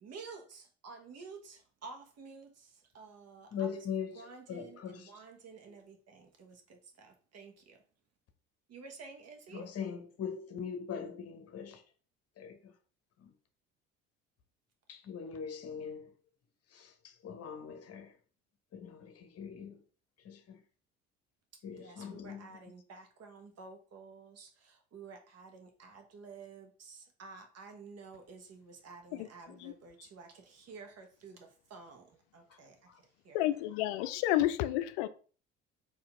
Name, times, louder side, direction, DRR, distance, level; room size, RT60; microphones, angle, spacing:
voice 1, 0.0-3.9 4.1-7.8 8.7-9.7 21.5-32.8 33.2-33.4, right 4 dB, 45° right, 1.2 m, -51 dB
voice 2, 3.5-5.1 9.5-11.8 12.4-12.7 13.2-13.3 14.9-16.1 16.7-18.1 18.7-19.8 20.2-20.6 21.6-22.5, left 7 dB, 40° left, 1.0 m, -41 dB
voice 3, 33.3-35.1, left 14 dB, 65° left, 0.5 m, -30 dB
4.4 x 2.8 x 3.7 m
hypercardioid pair, 65°, 36 cm